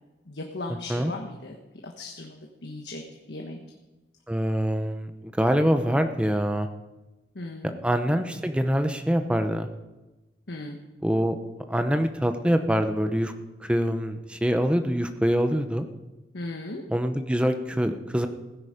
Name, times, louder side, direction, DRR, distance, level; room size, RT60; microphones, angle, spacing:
voice 1, 0.3-1.6 1.8-3.6 7.3-7.8 10.5-10.8 16.3-16.9, left 2 dB, 85° left, 1 dB, 1.3 m, -37 dB
voice 2, 4.3-6.7 7.8-9.7 11.0-11.4 11.7-13.3 13.6-15.9 16.9-18.3, equal, 5° right, 7 dB, 0.8 m, -24 dB
16.5 x 9.8 x 5.1 m, 1.1 s
head